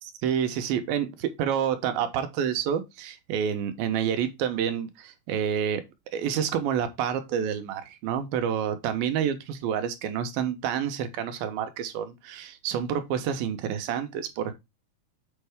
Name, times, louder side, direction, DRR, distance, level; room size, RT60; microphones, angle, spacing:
voice 1, 0.0-5.8 6.1-14.5, right 8 dB, 90° right, 2.8 m, -28 dB
7.2 x 5.5 x 3.5 m
omnidirectional pair, 4.2 m